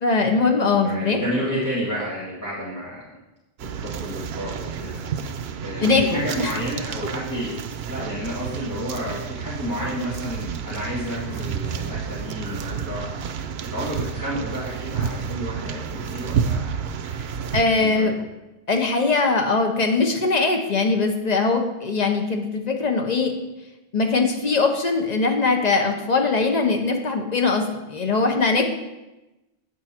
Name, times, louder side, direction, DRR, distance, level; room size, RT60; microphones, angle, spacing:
voice 1, 0.0-1.2 5.8-6.0 6.4-6.5 17.5-18.2 18.7-23.3 23.9-28.6, left 3 dB, 45° left, 3 dB, 1.0 m, -21 dB
voice 2, 0.8-3.0 3.6-5.0 5.6-7.6 7.9-16.7 17.4-18.1, equal, 20° left, -10 dB, 1.9 m, -31 dB
sound 1, 3.6-17.6, right 7 dB, 90° right, 0.9 m, -30 dB
8.6 x 6.4 x 4.4 m, 1.0 s
omnidirectional pair, 1.0 m